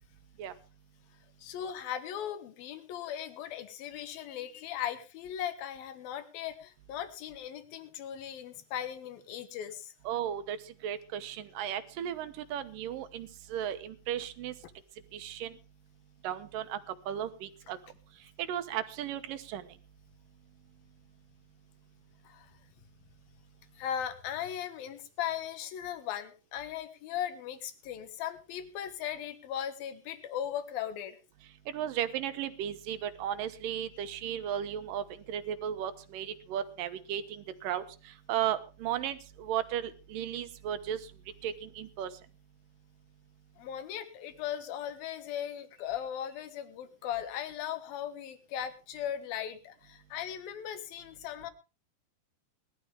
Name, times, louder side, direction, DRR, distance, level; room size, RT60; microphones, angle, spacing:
voice 1, 1.4-9.9 22.2-22.5 23.8-31.2 43.6-51.5, left 10 dB, 75° left, 10 dB, 3.2 m, -38 dB
voice 2, 10.1-10.6 10.8-14.5 15.1-15.5 16.2-16.8 17.1-17.8 18.4-19.6 31.7-37.8 38.3-41.0 41.4-42.1, right 10 dB, 70° right, 11 dB, 2.6 m, -35 dB
20.0 x 12.5 x 3.5 m, 0.31 s
omnidirectional pair, 4.3 m